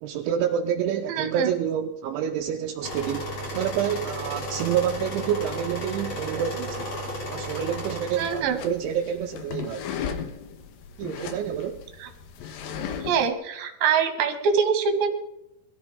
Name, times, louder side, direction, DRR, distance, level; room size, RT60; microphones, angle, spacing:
voice 1, 0.0-3.3 3.5-6.9 7.3-9.9 11.0-11.8, right 9 dB, 80° right, 4 dB, 2.9 m, -28 dB
voice 2, 1.1-1.6 8.2-8.6 12.0-12.1 13.0-15.1, right 6 dB, 60° right, 5 dB, 3.2 m, -24 dB
sound 1, 2.8-8.4, equal, 30° left, 3.1 m, -33 dB
sound 2, 8.2-13.3, left 7 dB, 85° left, 2.0 m, -36 dB
21.5 x 13.5 x 3.8 m, 0.83 s
omnidirectional pair, 5.8 m